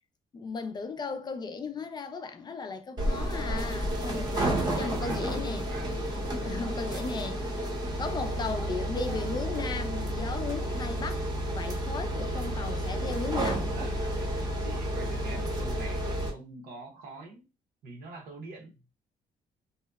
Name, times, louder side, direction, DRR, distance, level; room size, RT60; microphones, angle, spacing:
voice 1, 0.3-5.7 6.4-7.4 8.0-13.7, left 4 dB, 30° left, 0.3 m, -36 dB
sound 1, 3.0-16.3, right 1 dB, 25° right, 0.7 m, -31 dB
voice 2, 4.7-6.1 6.9-7.5 13.7-14.0 14.6-17.4 17.8-18.8, right 3 dB, 85° right, 0.8 m, -45 dB
2.7 x 2.1 x 2.2 m
cardioid pair, 120°, 15 cm